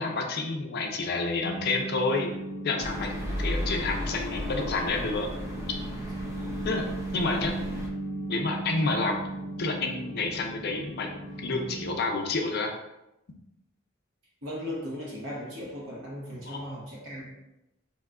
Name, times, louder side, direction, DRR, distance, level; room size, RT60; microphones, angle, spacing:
voice 1, 0.0-2.3 2.6-5.3 6.6-6.8 7.1-7.5 8.3-9.2 9.6-11.1 11.4-12.7 16.5-16.6, left 3 dB, 55° left, 3 dB, 0.4 m, -29 dB
sound 1, 1.4-12.0, right 1 dB, 40° right, 1.0 m, -37 dB
sound 2, 2.8-7.9, equal, 15° right, 0.5 m, -35 dB
voice 2, 14.4-17.3, left 1 dB, 75° right, -4 dB, 1.0 m, -37 dB
2.7 x 2.2 x 3.5 m, 0.91 s
head